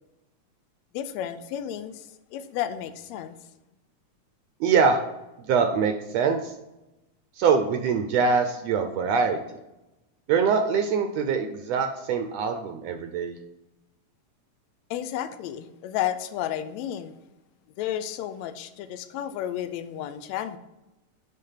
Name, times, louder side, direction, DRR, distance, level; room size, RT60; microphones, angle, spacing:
voice 1, 0.9-3.4 14.9-17.2 17.8-20.6, left 11 dB, 80° left, 11 dB, 1.8 m, -32 dB
voice 2, 4.6-5.0 5.5-6.5 7.4-9.6 10.3-13.3, right 5 dB, 75° right, 6 dB, 1.7 m, -23 dB
10.0 x 3.9 x 5.7 m, 0.96 s
omnidirectional pair, 3.4 m